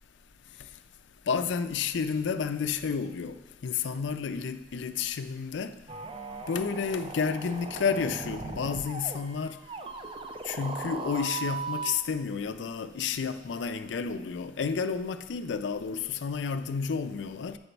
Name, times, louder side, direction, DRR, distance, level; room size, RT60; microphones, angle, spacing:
voice 1, 1.3-5.8 6.5-9.6 10.5-17.6, left 6 dB, 80° left, 0.4 m, -31 dB
sound 1, 5.9-11.9, right 4 dB, 30° right, 0.4 m, -38 dB
8.4 x 4.0 x 4.5 m
head